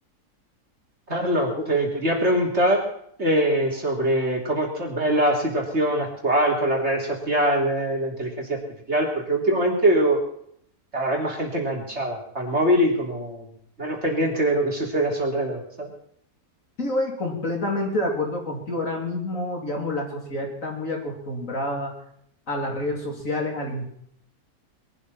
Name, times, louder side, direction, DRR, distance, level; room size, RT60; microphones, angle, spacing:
voice 1, 1.1-2.8 3.2-8.6 8.9-10.2 10.9-13.5 13.8-15.9, right 1 dB, 40° right, 0 dB, 3.8 m, -23 dB
voice 2, 16.8-21.9 22.5-23.9, left 1 dB, 50° left, 1 dB, 3.6 m, -28 dB
22.5 x 12.0 x 4.3 m, 0.67 s
omnidirectional pair, 1.7 m